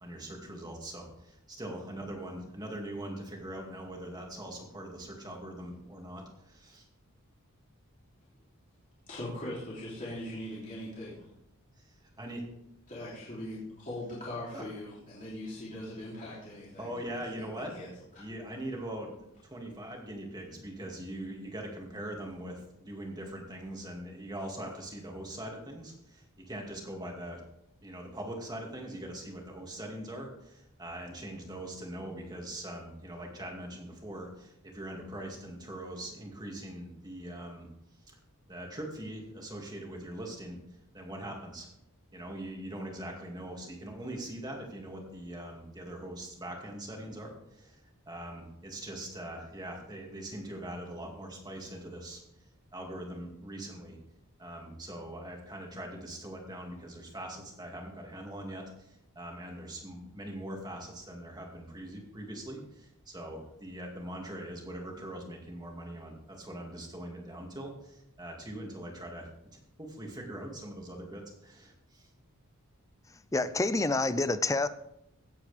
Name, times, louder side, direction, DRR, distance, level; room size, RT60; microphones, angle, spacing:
voice 1, 0.0-6.8 12.2-12.4 14.5-14.6 16.8-17.7 18.2-27.4 27.8-37.7 38.1-38.2 38.5-40.6 40.9-41.7 42.1-52.2 52.7-54.0 54.4-69.3 69.8-72.1, right 1 dB, 20° right, 2.3 m, -42 dB
voice 2, 9.1-11.3 12.9-16.9 17.2-18.3, left 1 dB, 35° left, 3.1 m, -41 dB
voice 3, 73.3-74.7, left 2 dB, 15° left, 0.4 m, -27 dB
16.5 x 8.4 x 3.5 m
head